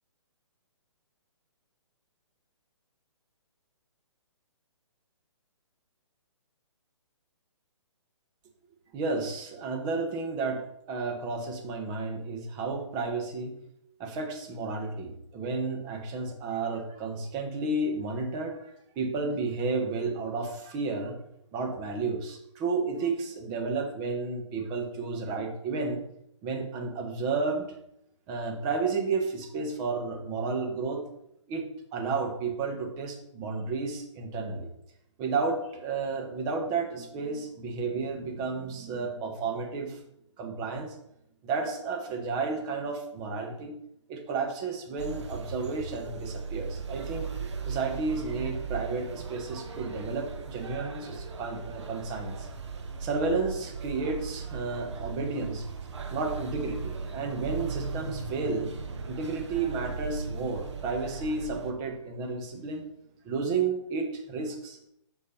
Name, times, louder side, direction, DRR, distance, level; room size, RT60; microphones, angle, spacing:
voice 1, 8.9-13.5 14.0-18.7 18.9-21.2 21.5-26.0 26.4-27.7 28.3-31.0 31.5-34.7 35.2-40.0 40.4-41.0 41.4-43.7 44.1-47.3 47.7-52.5 53.0-55.7 56.1-58.7 59.0-62.9 63.2-64.8, right 4 dB, 25° right, 3 dB, 1.4 m, -32 dB
sound 1, 45.0-61.7, right 5 dB, 65° right, 1.3 m, -37 dB
8.5 x 6.1 x 4.3 m, 0.78 s
figure-of-eight pair, 135°, 16 cm